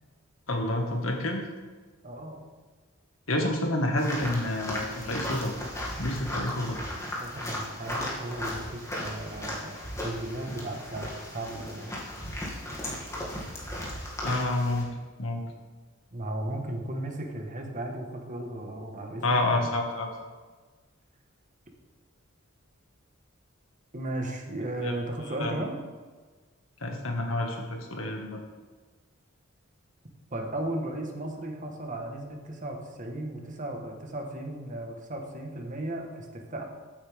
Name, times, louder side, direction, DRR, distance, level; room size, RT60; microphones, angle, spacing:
voice 1, 0.5-1.4 3.3-5.5 6.0-6.8 14.2-14.9 15.2-15.4 19.2-20.1 24.8-24.9 25.4-25.5 26.8-28.4, left 1 dB, 80° left, 1 dB, 1.9 m, -28 dB
voice 2, 2.0-2.4 7.2-11.9 16.1-19.7 23.9-25.7 30.3-36.6, right 1 dB, 40° right, 2 dB, 1.5 m, -35 dB
sound 1, 4.0-14.8, left 1 dB, 15° left, 2.4 m, -36 dB
15.0 x 8.6 x 3.6 m, 1.4 s
head